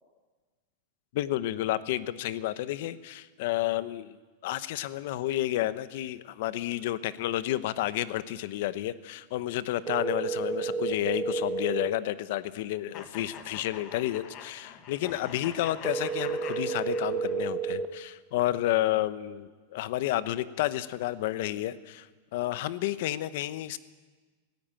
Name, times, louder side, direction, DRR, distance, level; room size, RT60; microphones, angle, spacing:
voice 1, 1.1-4.2 4.4-23.8, left 14 dB, 50° left, 15 dB, 0.8 m, -31 dB
sound 1, 9.9-11.9 15.8-17.9, right 5 dB, 15° right, 0.9 m, -31 dB
sound 2, 12.9-17.5, left 8 dB, 30° left, 1.4 m, -45 dB
19.0 x 16.0 x 9.0 m, 1.3 s
supercardioid pair, 175°, 0 cm